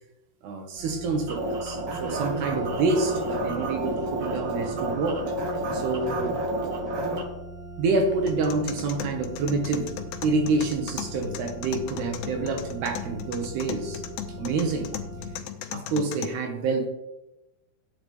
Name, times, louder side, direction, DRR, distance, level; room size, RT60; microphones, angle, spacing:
voice 1, 0.4-5.2 5.7-6.4 7.8-10.0 10.2-14.0 14.4-15.0 15.7-16.9, right 3 dB, 75° right, 4 dB, 3.4 m, -27 dB
sound 1, 0.8-15.4, right 2 dB, 30° right, 4.0 m, -41 dB
sound 2, 1.3-7.2, right 1 dB, 45° right, 2.0 m, -30 dB
sound 3, 8.3-16.3, left 10 dB, 85° left, 3.0 m, -38 dB
15.0 x 9.5 x 3.3 m, 0.94 s
omnidirectional pair, 4.9 m